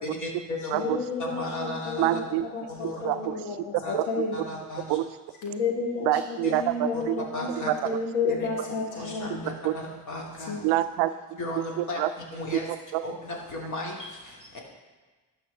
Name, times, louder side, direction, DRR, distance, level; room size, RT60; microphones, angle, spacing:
voice 1, 0.0-0.9 1.2-2.2 2.7-3.1 3.7-4.0 4.3-5.0 6.4-6.5 6.9-7.0 7.3-7.7 8.3-8.5 8.9-10.7 11.4-12.8 13.0-14.6, left 1 dB, 40° left, -2 dB, 2.6 m, -35 dB
voice 2, 0.7-2.2 2.5-4.4 5.4-9.3 10.5-10.6, left 4 dB, 85° left, 0 dB, 1.4 m, -31 dB
voice 3, 2.0-2.5 3.0-3.3 3.9-4.3 4.9-5.0 6.0-7.2 7.8-8.0 9.6-9.7 10.6-11.4 11.8-12.1 12.9-13.0, right 14 dB, 70° right, 12 dB, 0.5 m, -26 dB
11.5 x 5.8 x 3.5 m, 1.3 s
hypercardioid pair, 50°, 43 cm